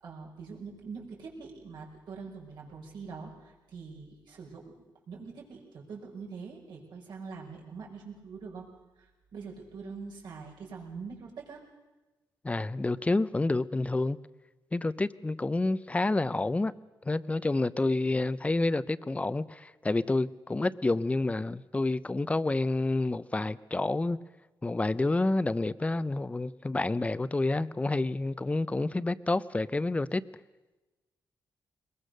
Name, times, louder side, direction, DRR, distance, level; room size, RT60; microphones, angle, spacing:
voice 1, 0.0-4.7 5.1-8.7 9.0-11.6, right 5 dB, 75° right, -2 dB, 5.6 m, -44 dB
voice 2, 12.4-14.2 14.7-16.7 17.1-24.2 24.6-30.2, left 2 dB, 15° left, 16 dB, 0.6 m, -29 dB
21.5 x 21.0 x 6.6 m, 1.1 s
cardioid pair, 100°, 8 cm